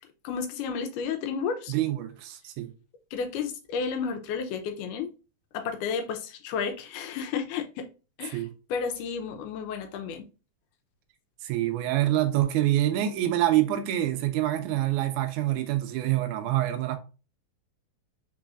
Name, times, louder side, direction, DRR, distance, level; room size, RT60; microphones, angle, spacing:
voice 1, 0.2-1.7 3.1-5.1 5.5-7.9 8.2-8.4 8.7-10.3, left 6 dB, 90° left, 2.2 m, -32 dB
voice 2, 1.7-2.7 8.3-8.5 11.4-17.0, right 13 dB, 80° right, 2.0 m, -26 dB
4.7 x 3.9 x 2.4 m
omnidirectional pair, 3.6 m